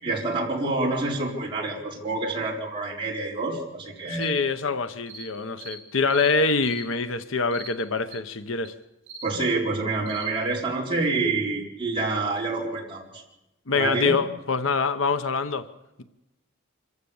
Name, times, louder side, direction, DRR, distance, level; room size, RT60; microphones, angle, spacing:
voice 1, 0.0-4.3 9.2-13.2 13.7-14.2, right 3 dB, 25° right, 4.3 m, -27 dB
voice 2, 4.1-8.7 13.7-15.7, left 4 dB, 70° left, 0.9 m, -25 dB
sound 1, 4.2-4.3 5.1-5.3 5.6-5.8 6.1-6.3 6.6-6.8 7.5-7.7 8.1-8.2 8.6-8.7 9.1-9.3 10.1-10.3, right 3 dB, 65° right, 5.5 m, -40 dB
26.0 x 15.0 x 7.2 m
head